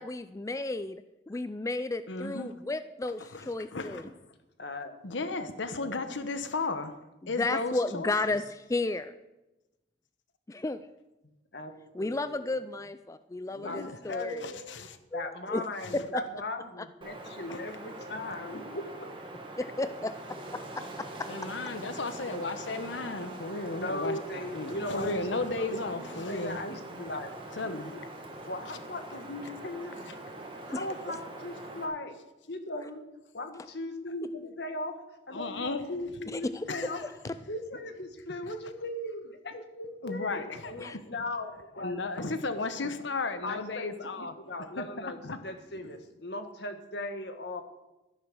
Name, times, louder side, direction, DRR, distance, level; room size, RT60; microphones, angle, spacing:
voice 1, 0.0-4.1 7.2-9.1 10.5-10.9 11.9-14.4 15.1-15.6 15.9-16.2 19.6-20.1 20.5-21.5 30.7-30.9 36.3-36.9 40.8-41.0, left 2 dB, 15° left, 0.3 m, -33 dB
voice 2, 2.1-2.5 3.3-4.0 5.0-6.9 7.3-8.1 13.5-14.0 14.4-15.0 15.8-15.9 21.3-26.6 27.6-28.0 35.3-35.8 36.7-37.1 40.0-40.9 41.8-44.3 44.8-44.9 45.2-45.4, left 3 dB, 90° left, 1.1 m, -34 dB
voice 3, 4.6-4.9 5.3-6.1 11.5-11.7 12.0-12.5 13.6-19.1 23.8-25.2 25.6-28.0 28.5-30.1 30.7-32.1 32.5-33.0 33.3-34.9 35.3-37.0 37.5-42.1 43.4-47.6, left 1 dB, 65° left, 1.7 m, -38 dB
Wind, 17.0-31.9, right 1 dB, 30° right, 1.9 m, -43 dB
13.0 x 10.5 x 6.3 m
head